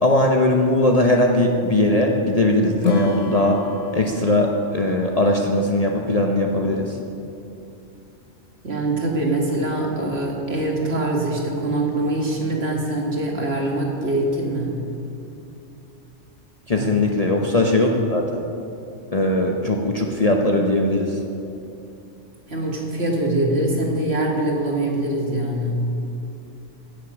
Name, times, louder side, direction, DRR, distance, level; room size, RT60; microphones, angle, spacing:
voice 1, 0.0-3.6 3.9-7.0 16.7-18.4 19.1-21.2, left 1 dB, 35° left, 1 dB, 0.8 m, -19 dB
Acoustic guitar / Strum, 2.8-6.1, left 4 dB, 80° left, 1.2 m, -29 dB
voice 2, 8.6-14.7 16.8-16.9 22.5-25.8, right 1 dB, 55° right, -1 dB, 2.1 m, -23 dB
16.5 x 7.0 x 6.1 m, 2.7 s
omnidirectional pair, 1.3 m